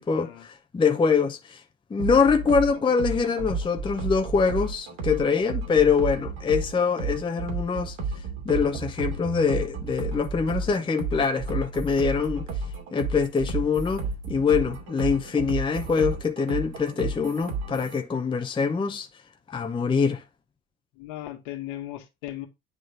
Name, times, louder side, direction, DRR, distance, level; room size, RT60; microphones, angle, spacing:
voice 1, 0.0-1.6 1.9-8.0 8.5-12.5 12.9-19.1 19.5-20.2, left 5 dB, 10° left, 0.7 m, -24 dB
sound 1, 2.0-18.0, right 3 dB, 50° right, 2.7 m, -32 dB
voice 2, 20.9-22.5, left 14 dB, 55° left, 1.7 m, -37 dB
9.7 x 3.7 x 3.4 m
figure-of-eight pair, 70°, 43 cm